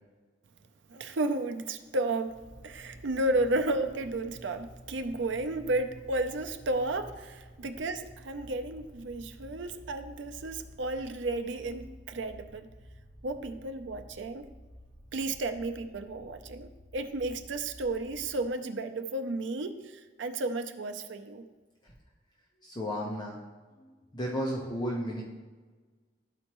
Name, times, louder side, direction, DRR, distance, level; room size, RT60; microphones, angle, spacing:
voice 1, 0.9-12.7 13.2-14.5 15.1-21.4, right 2 dB, 80° right, 8 dB, 0.5 m, -33 dB
sound 1, 2.2-18.5, equal, 55° right, 0.9 m, -51 dB
voice 2, 22.6-23.4 23.8-25.2, equal, 25° left, -4 dB, 0.9 m, -33 dB
12.5 x 4.4 x 3.0 m, 1.3 s
head